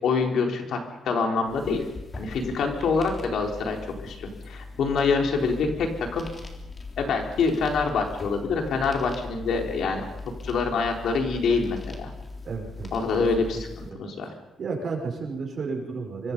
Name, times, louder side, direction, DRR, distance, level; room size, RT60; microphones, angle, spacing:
voice 1, 0.0-1.8 2.2-3.8 4.0-6.3 7.0-10.0 10.4-12.1 12.9-13.7 14.0-14.3, left 4 dB, 70° left, 2 dB, 4.1 m, -25 dB
sound 1, 1.4-13.9, left 3 dB, 25° left, 3.6 m, -40 dB
voice 2, 12.4-12.9 13.9-14.0 14.6-16.3, right 4 dB, 50° right, 1 dB, 5.8 m, -32 dB
26.0 x 24.0 x 5.5 m, 0.93 s
cardioid pair, 120°, 0 cm